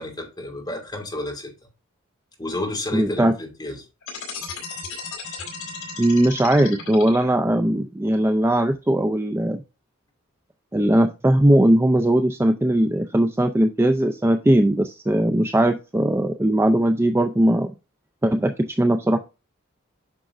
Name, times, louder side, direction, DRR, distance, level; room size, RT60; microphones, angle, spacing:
voice 1, 0.0-1.5 2.4-3.8, left 1 dB, 20° left, 1 dB, 2.5 m, -31 dB
voice 2, 2.9-3.3 6.0-9.6 10.7-17.7 18.2-19.2, right 1 dB, 10° right, 7 dB, 0.4 m, -19 dB
sound 1, 4.0-7.6, left 5 dB, 80° left, 3.4 m, -35 dB
9.0 x 6.0 x 2.5 m, 0.29 s
head